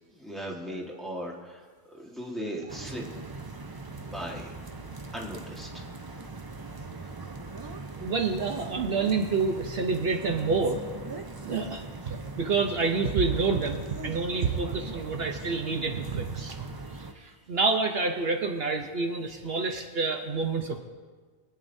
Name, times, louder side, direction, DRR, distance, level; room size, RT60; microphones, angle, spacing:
voice 1, 0.1-1.7 1.9-3.1 4.0-4.5 5.1-5.8, equal, ahead, -2 dB, 1.5 m, -37 dB
sound 1, 2.7-17.1, right 3 dB, 30° right, 0.5 m, -40 dB
voice 2, 8.0-10.8 11.4-16.7 17.1-20.8, right 4 dB, 65° right, 4 dB, 1.0 m, -28 dB
23.5 x 8.9 x 2.7 m, 1.4 s
omnidirectional pair, 1.2 m